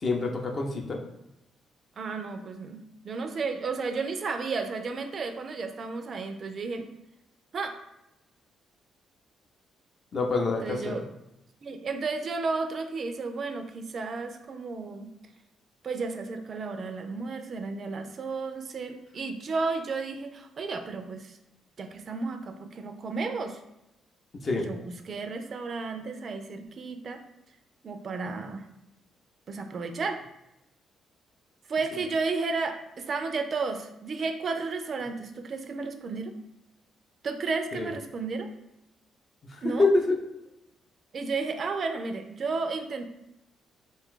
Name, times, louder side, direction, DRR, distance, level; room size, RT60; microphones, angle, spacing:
voice 1, 0.0-1.0 10.1-11.0 24.4-24.7 37.7-37.9 39.6-40.2, left 3 dB, 45° left, 2 dB, 0.6 m, -26 dB
voice 2, 2.0-6.9 7.5-7.7 10.6-11.1 11.6-15.1 15.8-21.4 21.8-23.6 24.5-27.2 27.8-28.7 29.5-30.2 31.7-36.3 37.2-38.5 39.6-39.9 41.1-43.0, right 4 dB, 50° right, 6 dB, 0.3 m, -33 dB
2.5 x 2.3 x 3.7 m, 0.88 s
cardioid pair, 90°, 0 cm